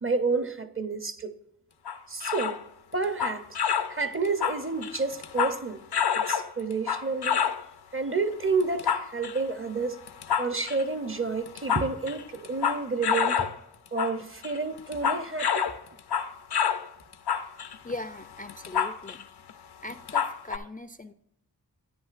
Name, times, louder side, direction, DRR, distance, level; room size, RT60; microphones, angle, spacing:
voice 1, 0.0-1.4 2.1-2.6 2.9-3.5 3.9-5.8 6.1-7.4 7.9-10.0 10.4-13.5 13.9-15.7, right 4 dB, 35° right, 0.6 m, -30 dB
sound 1, 1.9-2.6 3.0-4.0 4.2-5.6 5.9-7.6 8.6-9.4 10.1-10.8 11.4-13.6 13.9-14.2 14.4-16.9 17.1-19.2 19.5-19.6 19.9-20.6, left 7 dB, 90° left, 0.6 m, -28 dB
voice 2, 17.8-19.3 19.8-21.1, left 2 dB, 25° left, 0.3 m, -39 dB
11.0 x 9.7 x 2.5 m
wide cardioid pair, 55°, 38 cm